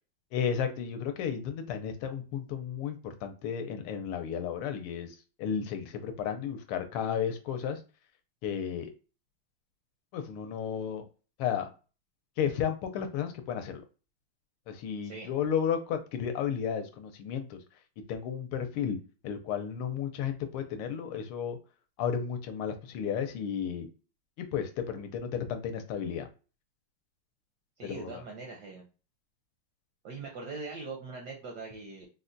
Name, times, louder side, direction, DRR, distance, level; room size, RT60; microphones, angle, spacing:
voice 1, 0.3-7.8 8.4-8.9 10.1-11.0 11.4-11.7 12.4-13.8 14.7-17.6 18.1-19.0 19.2-21.6 22.0-23.9 24.4-26.3 27.8-28.2, left 8 dB, 80° left, 7 dB, 1.4 m, -33 dB
voice 2, 27.8-28.8 30.0-32.1, right 4 dB, 75° right, 1 dB, 0.9 m, -41 dB
3.9 x 2.1 x 2.5 m, 0.34 s
omnidirectional pair, 2.3 m